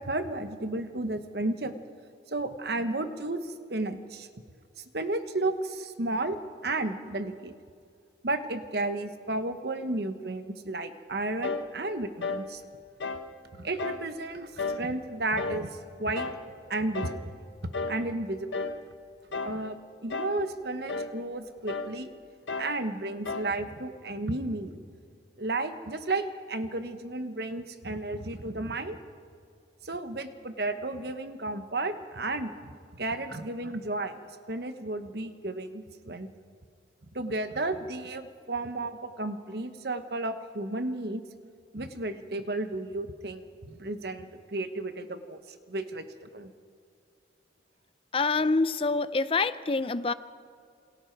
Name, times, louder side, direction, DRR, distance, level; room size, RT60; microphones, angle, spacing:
voice 1, 0.0-1.7 2.3-4.3 4.8-7.5 8.2-12.6 13.5-16.3 16.7-17.3 17.6-18.6 19.4-22.1 22.6-24.8 25.4-29.0 29.8-34.2 34.5-36.3 37.1-41.2 41.7-45.4 45.7-46.5, right 2 dB, 60° right, 9 dB, 1.2 m, -33 dB
sound 1, 11.4-11.7 12.2-12.5 13.0-13.3 13.8-14.1 14.6-14.9 15.4-15.7 16.2-16.5 16.9-17.2 17.7-18.0 18.5-18.8 19.3-19.6 20.1-20.4 20.9-21.2 21.7-22.0 22.5-22.8 23.3-23.6, left 3 dB, 85° left, 1.1 m, -33 dB
voice 2, 48.1-50.1, left 3 dB, 30° left, 14 dB, 0.5 m, -26 dB
28.0 x 21.5 x 4.6 m, 2.4 s
head